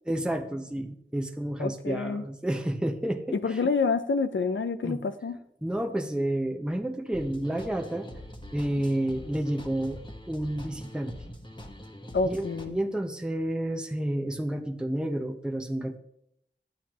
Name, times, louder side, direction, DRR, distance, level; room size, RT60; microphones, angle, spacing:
voice 1, 0.1-3.6 4.8-5.0 5.6-8.1 8.5-10.0 10.3-11.1 12.2-16.0, right 1 dB, 5° right, 4 dB, 0.8 m, -30 dB
voice 2, 1.6-2.2 3.3-5.4 12.1-12.8, left 4 dB, 75° left, 10 dB, 0.5 m, -28 dB
sound 1, 7.1-12.7, equal, 25° left, 1.2 m, -44 dB
10.5 x 9.0 x 3.0 m, 0.75 s
wide cardioid pair, 40°, 20 cm